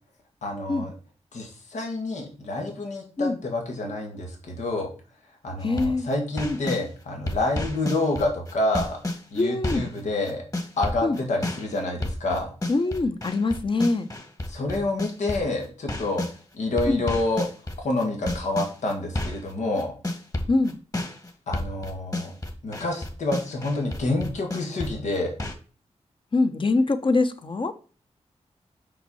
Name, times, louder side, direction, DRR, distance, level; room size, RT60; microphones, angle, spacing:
voice 1, 0.4-0.9 1.3-4.9 5.4-9.0 9.3-10.4 10.8-12.5 14.5-16.3 16.5-17.5 17.8-19.9 21.5-22.3 22.6-25.3, left 2 dB, 90° left, 1 dB, 2.0 m, -28 dB
voice 2, 5.6-6.1 6.4-6.6 9.4-9.9 11.0-11.2 12.7-14.1 16.9-17.0 20.5-20.8 26.3-27.7, left 3 dB, 45° left, 8 dB, 1.1 m, -23 dB
sound 1, 5.6-6.8 7.3-10.0 10.2-16.4 16.8-25.5, left 1 dB, 30° left, 1.6 m, -31 dB
5.9 x 5.5 x 5.6 m, 0.37 s
cardioid pair, 65°, 12 cm